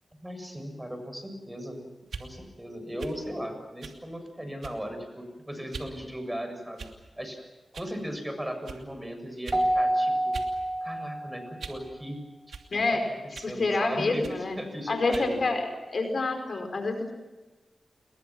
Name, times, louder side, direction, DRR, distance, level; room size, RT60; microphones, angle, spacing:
voice 1, 0.2-1.8 2.2-6.9 7.2-7.4 7.7-10.4 10.8-13.0 13.3-15.6, equal, 10° right, 7 dB, 7.3 m, -37 dB
sound 1, 2.0-2.3 3.0-3.2 3.8-4.0 4.6-4.9 5.7-5.9 6.8-7.1 7.7-7.9 8.6-8.8 9.4-9.7 10.3-10.5 10.9-11.9 12.5-12.7 13.3-13.6 14.2-14.4 15.1-15.3, right 5 dB, 80° right, 2.8 m, -42 dB
Keyboard (musical), 9.5-11.8, right 1 dB, 25° right, 2.5 m, -27 dB
voice 2, 12.7-13.1 13.4-14.5 14.9-17.1, left 3 dB, 60° left, 5 dB, 4.8 m, -28 dB
30.0 x 21.5 x 6.1 m, 1.2 s
cardioid pair, 55°, 0 cm